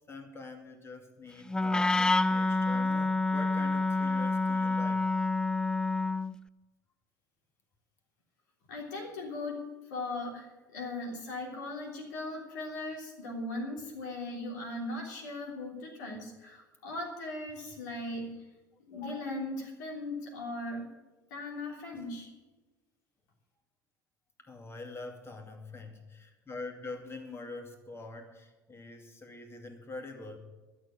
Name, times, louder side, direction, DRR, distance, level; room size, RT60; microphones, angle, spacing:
voice 1, 0.1-5.1 21.9-22.1 24.4-30.4, left 3 dB, 25° left, 5 dB, 2.5 m, -45 dB
Wind instrument woodwind instrument, 1.5-6.4, left 2 dB, 10° left, 0.4 m, -28 dB
voice 2, 8.7-18.4 18.9-20.9 21.3-22.3, left 2 dB, 70° left, 0 dB, 3.3 m, -38 dB
12.0 x 7.2 x 9.8 m, 1.2 s
figure-of-eight pair, 65°, 10 cm